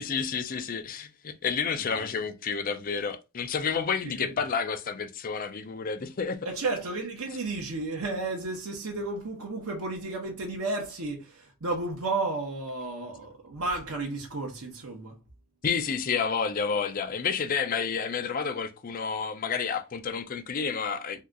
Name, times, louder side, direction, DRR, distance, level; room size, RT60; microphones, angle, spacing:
voice 1, 0.0-6.5 15.6-21.2, left 6 dB, 40° left, 0.4 m, -30 dB
voice 2, 6.4-15.2, right 3 dB, 80° right, 0.8 m, -33 dB
2.8 x 2.3 x 3.6 m
head